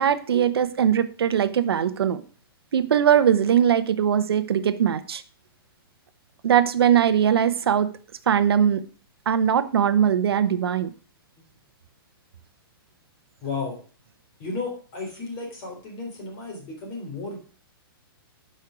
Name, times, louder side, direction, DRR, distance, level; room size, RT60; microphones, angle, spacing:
voice 1, 0.0-2.2 2.7-5.2 6.4-7.9 8.3-8.8 9.3-10.9, right 9 dB, 80° right, 12 dB, 1.0 m, -20 dB
voice 2, 13.4-13.8 14.4-17.4, left 3 dB, 25° left, 1 dB, 3.6 m, -33 dB
11.5 x 5.6 x 6.3 m, 0.41 s
hypercardioid pair, 175°, 13 cm